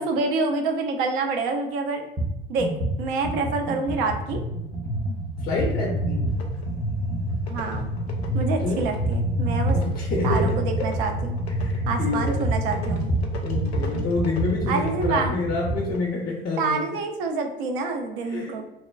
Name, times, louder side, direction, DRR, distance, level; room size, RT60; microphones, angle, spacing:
voice 1, 0.0-2.0 2.5-2.7 3.0-4.4 7.5-7.9 8.3-9.8 10.2-11.4 11.9-13.1 14.7-15.4 16.6-18.6, right 4 dB, 55° right, 4 dB, 0.6 m, -27 dB
sound 1, 2.2-2.3 2.6-15.9, right 1 dB, 15° right, 0.6 m, -27 dB
voice 2, 5.4-6.3 8.6-8.8 9.7-10.9 11.6-12.4 13.4-16.8 18.2-18.6, left 3 dB, 30° left, -2 dB, 0.5 m, -28 dB
sound 2, 6.3-6.9 7.3-16.1, left 4 dB, 85° left, 0.5 m, -41 dB
3.0 x 2.2 x 2.2 m, 0.90 s
figure-of-eight pair, 70°, 31 cm